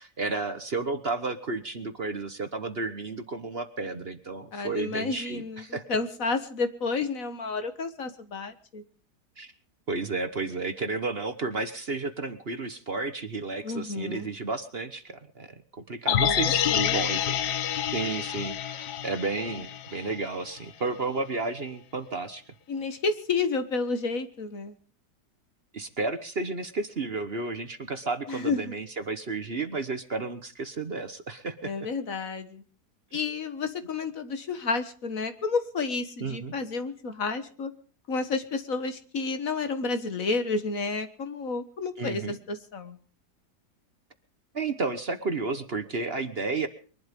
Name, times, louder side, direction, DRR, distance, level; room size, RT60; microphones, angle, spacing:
voice 1, 0.0-5.8 9.4-9.5 9.9-17.4 17.9-22.4 25.7-31.7 36.2-36.5 42.0-42.4 44.5-46.7, right 3 dB, 40° right, 10 dB, 1.3 m, -32 dB
voice 2, 4.5-8.8 13.6-14.3 16.1-17.0 22.7-24.8 28.3-28.7 31.6-32.6 33.1-37.7 38.1-43.0, left 4 dB, 55° left, 10 dB, 1.9 m, -31 dB
sound 1, 16.1-20.3 20.6-20.7, left 10 dB, 80° left, 1.5 m, -28 dB
23.0 x 11.5 x 5.3 m, 0.42 s
omnidirectional pair, 1.7 m